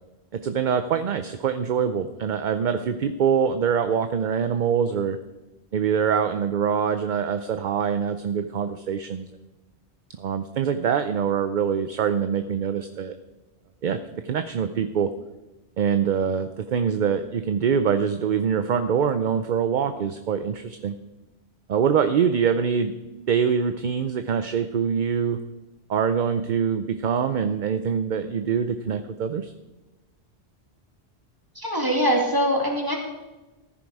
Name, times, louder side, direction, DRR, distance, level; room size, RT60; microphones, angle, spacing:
voice 1, 0.3-5.2 5.7-9.3 10.2-13.1 13.8-15.1 15.8-20.9 21.7-23.0 23.3-25.4 25.9-29.5, right 7 dB, 55° right, 9 dB, 0.6 m, -24 dB
voice 2, 31.6-33.0, equal, 20° right, 0 dB, 2.5 m, -22 dB
14.5 x 10.0 x 4.8 m, 1.1 s
omnidirectional pair, 1.1 m